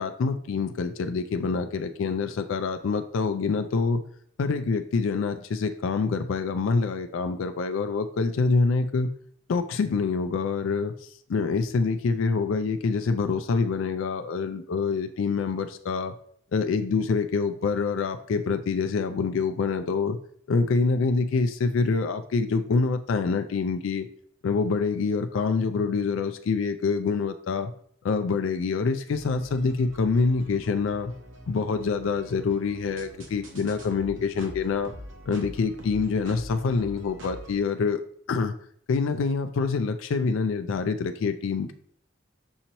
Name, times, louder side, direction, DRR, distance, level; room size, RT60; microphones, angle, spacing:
voice 1, 0.0-4.0 4.4-9.1 9.5-10.9 11.3-16.1 16.5-20.2 20.5-24.1 24.4-27.7 28.0-31.1 31.5-34.9 35.3-38.0 38.3-38.5 38.9-41.7, left 4 dB, 85° left, 8 dB, 0.4 m, -26 dB
sound 1, 29.1-37.6, equal, 80° right, 0.8 m, -44 dB
6.3 x 2.9 x 2.8 m, 0.62 s
head